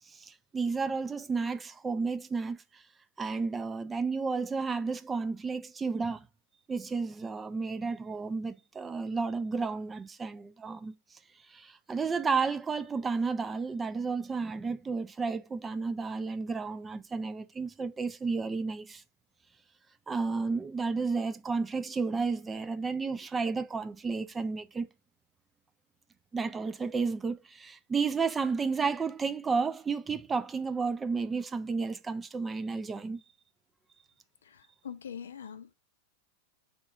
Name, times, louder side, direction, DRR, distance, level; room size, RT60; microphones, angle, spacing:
voice 1, 0.1-2.8 3.2-6.2 6.7-10.9 11.5-19.0 20.1-24.9 26.3-33.2, right 4 dB, 15° right, 0.3 m, -32 dB
voice 2, 34.4-35.7, left 8 dB, 65° left, 0.4 m, -43 dB
3.6 x 2.4 x 2.4 m
figure-of-eight pair, 90°, 0 cm